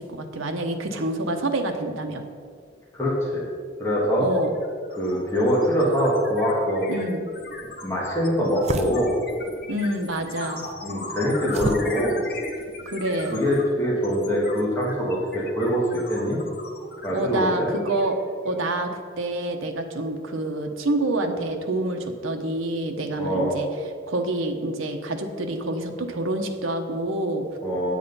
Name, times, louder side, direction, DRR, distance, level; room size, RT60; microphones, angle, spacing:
voice 1, 0.0-2.2 4.2-4.5 6.9-7.3 9.7-10.7 12.9-13.4 17.1-18.2 18.4-23.7 24.1-27.5, right 1 dB, 80° right, 4 dB, 1.0 m, -27 dB
voice 2, 2.9-3.4 3.8-4.3 5.0-6.9 7.8-9.2 10.8-12.2 13.3-16.4 17.0-17.7 23.2-23.6 27.6-27.9, equal, 15° left, -6 dB, 1.7 m, -23 dB
sound 1, 3.8-4.0 4.3-18.6, left 2 dB, 45° left, 1.4 m, -39 dB
sound 2, 7.3-13.7, right 2 dB, 30° right, 0.4 m, -36 dB
8.9 x 7.5 x 5.5 m, 2.1 s
head